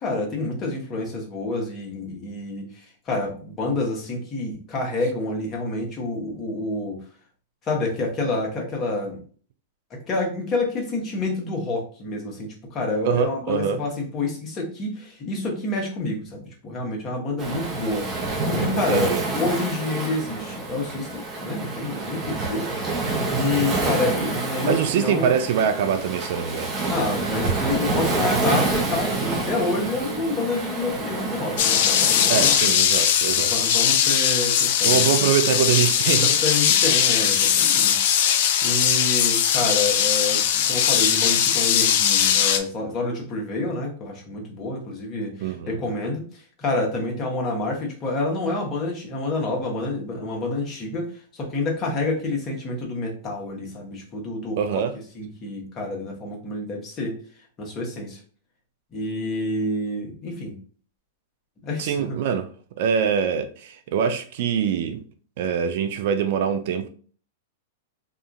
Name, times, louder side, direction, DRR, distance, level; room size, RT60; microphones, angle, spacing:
voice 1, 0.0-7.0 7.6-9.2 9.9-18.1 18.4-22.7 23.3-25.3 26.9-32.6 33.3-35.3 36.0-38.1 38.6-54.8 55.1-57.2 57.6-58.2 58.9-60.6 61.6-62.2, left 2 dB, 30° left, 1.1 m, -28 dB
voice 2, 13.0-13.8 18.7-19.2 23.4-23.7 24.6-26.7 32.3-33.5 34.8-36.3 45.4-45.7 54.6-54.9 61.8-62.5 62.8-65.0 65.4-66.9, right 8 dB, 60° right, 0.4 m, -24 dB
Waves surf, 17.4-32.6, right 3 dB, 25° right, 0.9 m, -27 dB
sound 1, 31.6-42.6, left 9 dB, 60° left, 0.4 m, -20 dB
2.8 x 2.4 x 2.4 m
hypercardioid pair, 125°, 0 cm